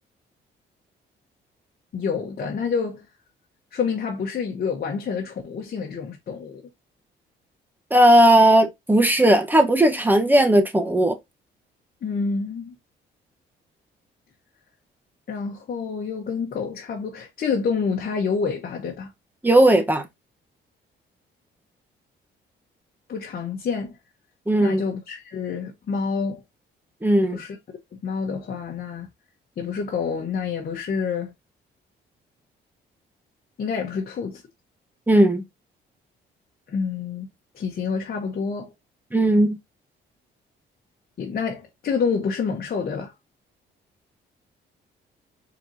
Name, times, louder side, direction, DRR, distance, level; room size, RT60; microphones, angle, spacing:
voice 1, 1.9-3.1 3.7-6.6 12.0-12.7 15.3-19.1 23.1-24.0 24.6-26.4 27.3-27.6 27.9-29.1 29.6-31.3 33.6-34.4 36.7-37.3 37.5-38.7 41.2-43.1, left 5 dB, 50° left, 1.1 m, -28 dB
voice 2, 7.9-11.1 19.4-20.0 24.5-24.8 27.0-27.4 35.1-35.4 39.1-39.6, right 1 dB, 10° right, 1.2 m, -17 dB
4.4 x 4.0 x 2.8 m
cardioid pair, 90°, 20 cm